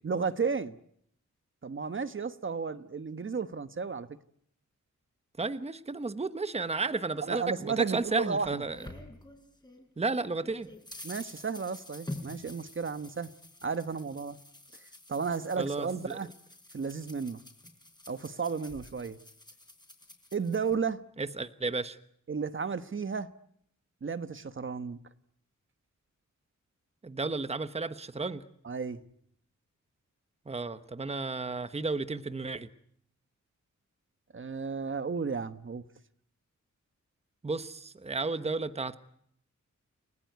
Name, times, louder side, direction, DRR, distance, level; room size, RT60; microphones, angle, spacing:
voice 1, 0.0-0.7 1.6-4.1 7.2-8.6 11.0-13.3 13.6-14.4 15.1-16.3 16.7-17.4 18.1-19.2 20.3-21.0 22.3-23.3 24.0-25.0 28.6-29.0 34.3-35.8, right 5 dB, 40° right, 12 dB, 1.2 m, -33 dB
voice 2, 5.4-8.8 10.0-10.7 15.6-16.2 21.2-22.0 27.0-28.4 30.5-32.7 37.4-39.0, right 3 dB, 20° right, 11 dB, 1.1 m, -33 dB
sound 1, 8.0-9.9 10.2-20.7, left 1 dB, 15° left, 5.2 m, -48 dB
30.0 x 20.0 x 9.4 m, 0.70 s
wide cardioid pair, 140°, 30 cm